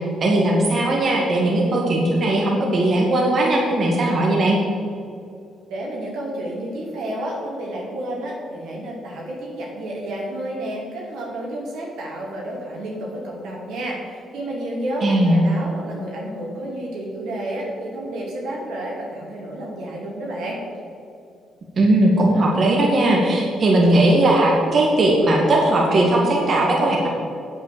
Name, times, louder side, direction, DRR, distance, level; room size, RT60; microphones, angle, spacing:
voice 1, 0.2-4.6 15.0-15.4 21.8-27.1, right 1 dB, 50° right, -2 dB, 2.1 m, -18 dB
voice 2, 5.7-20.6, right 1 dB, 85° right, -3 dB, 3.0 m, -30 dB
8.4 x 8.1 x 7.0 m, 2.5 s
cardioid pair, 90°, 0 cm